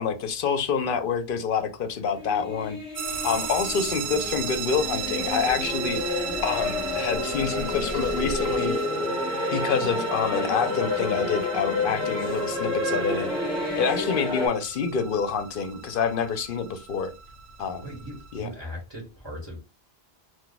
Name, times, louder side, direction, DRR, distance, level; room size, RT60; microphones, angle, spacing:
voice 1, 0.0-2.8 3.2-8.8 9.5-13.3 13.8-17.1 17.6-17.9 18.3-18.5, left 6 dB, 60° left, 0.7 m, -27 dB
sound 1, 2.1-14.5, left 2 dB, 30° left, 0.9 m, -30 dB
sound 2, 3.0-8.9, right 1 dB, 65° right, 1.0 m, -41 dB
sound 3, 3.0-18.4, right 7 dB, 85° right, 0.9 m, -36 dB
voice 2, 17.8-19.6, equal, 25° right, 1.2 m, -38 dB
2.5 x 2.2 x 3.9 m
omnidirectional pair, 1.1 m